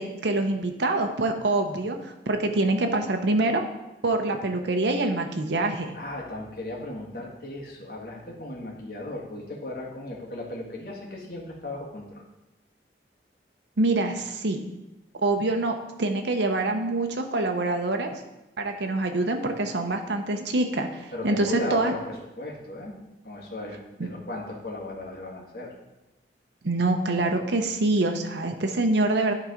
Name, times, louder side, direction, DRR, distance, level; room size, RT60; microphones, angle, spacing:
voice 1, 0.0-3.6 4.0-6.0 13.8-14.6 15.2-18.1 18.6-21.9 26.6-29.3, right 2 dB, 85° right, 4 dB, 0.8 m, -25 dB
voice 2, 5.9-12.2 21.1-23.0 23.2-25.7, left 2 dB, 55° left, -2 dB, 1.7 m, -36 dB
10.5 x 3.9 x 5.0 m, 0.98 s
head